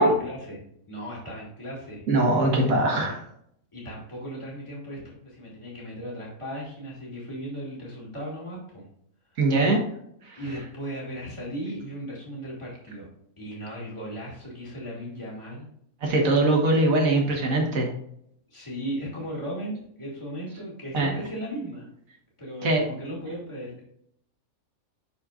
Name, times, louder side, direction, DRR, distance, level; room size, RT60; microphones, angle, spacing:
voice 1, 0.0-2.1 3.7-8.8 10.4-13.1 13.4-15.7 18.5-21.9 22.4-23.9, equal, 20° left, -5 dB, 2.3 m, -36 dB
voice 2, 2.1-3.2 9.4-9.8 10.2-10.4 16.0-17.9 20.9-21.1 22.6-22.8, right 2 dB, 70° right, 0 dB, 1.8 m, -21 dB
11.5 x 4.4 x 2.5 m, 0.71 s
omnidirectional pair, 1.5 m